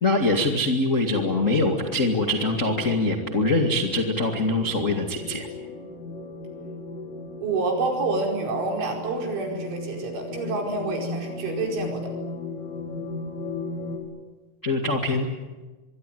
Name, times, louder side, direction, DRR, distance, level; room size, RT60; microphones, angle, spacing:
voice 1, 0.0-5.5 14.6-15.3, left 2 dB, 50° left, 3 dB, 0.8 m, -23 dB
sound 1, 1.1-14.0, left 3 dB, 90° left, 8.6 m, -36 dB
voice 2, 7.4-12.1, right 3 dB, 70° right, 2 dB, 7.4 m, -28 dB
25.0 x 23.5 x 9.3 m, 1.2 s
omnidirectional pair, 5.6 m